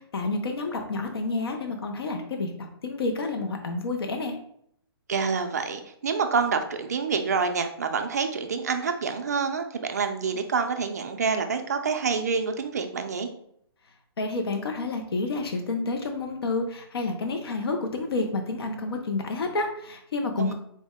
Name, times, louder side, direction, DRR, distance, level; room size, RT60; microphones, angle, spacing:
voice 1, 0.0-4.4 14.2-20.5, left 3 dB, 65° left, 4 dB, 0.6 m, -29 dB
voice 2, 5.1-13.3 20.3-20.5, right 5 dB, 40° right, 6 dB, 0.4 m, -27 dB
4.1 x 2.1 x 3.5 m, 0.70 s
hypercardioid pair, 175°, 14 cm